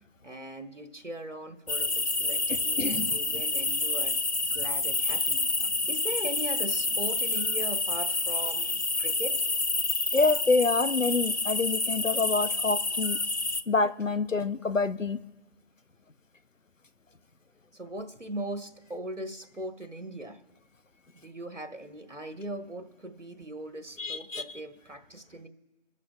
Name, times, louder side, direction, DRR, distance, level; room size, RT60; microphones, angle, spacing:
voice 1, 0.2-4.2 4.5-5.4 5.9-9.4 17.7-20.4 21.1-25.5, right 1 dB, 75° right, 6 dB, 1.7 m, -39 dB
sound 1, 1.7-13.6, left 3 dB, 60° left, 0.7 m, -28 dB
voice 2, 2.5-3.1 10.1-13.2 13.7-15.2 24.0-24.4, left 3 dB, 85° left, 12 dB, 0.9 m, -27 dB
27.5 x 14.0 x 2.5 m, 1.1 s
figure-of-eight pair, 175°, 37 cm